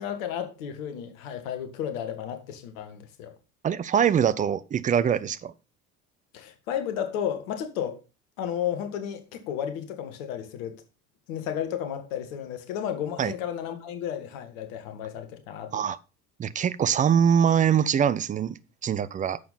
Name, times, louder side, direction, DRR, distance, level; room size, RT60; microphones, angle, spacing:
voice 1, 0.0-3.3 6.3-8.0 8.4-10.7 11.3-15.8, left 9 dB, 60° left, 1.8 m, -33 dB
voice 2, 3.6-5.5 13.2-13.3 15.7-16.0 16.4-19.4, right 8 dB, 20° right, 0.5 m, -23 dB
11.0 x 7.1 x 4.2 m
figure-of-eight pair, 65°, 46 cm